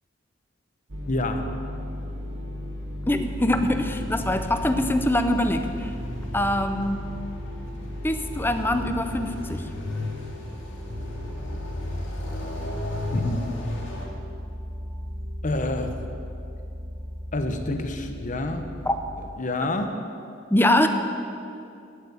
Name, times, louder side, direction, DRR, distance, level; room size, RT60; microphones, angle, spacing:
sound 1, 0.9-19.3, left 1 dB, 70° right, 1.7 m, -35 dB
voice 1, 1.1-1.4 13.1-13.4 15.4-16.0 17.3-18.7 19.2-19.9, left 2 dB, 40° left, 6 dB, 1.0 m, -28 dB
voice 2, 3.1-5.9 6.3-7.0 8.0-9.7 18.9-19.0 20.5-20.9, left 1 dB, 10° left, 8 dB, 0.6 m, -23 dB
sound 2, 3.5-14.1, left 1 dB, 70° left, 2.2 m, -36 dB
9.3 x 8.1 x 9.3 m, 2.5 s
head